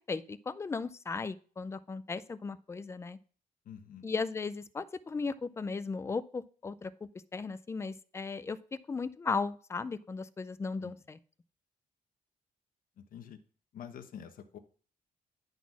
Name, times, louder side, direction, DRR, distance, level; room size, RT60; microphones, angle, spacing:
voice 1, 0.1-3.2 4.0-6.9 7.3-11.2, left 4 dB, 20° left, 14 dB, 0.4 m, -36 dB
voice 2, 3.6-4.1 10.8-10.9 13.0-13.4 13.7-14.6, left 8 dB, 65° left, 8 dB, 1.1 m, -47 dB
11.0 x 4.1 x 6.0 m, 0.41 s
wide cardioid pair, 175°, 15 cm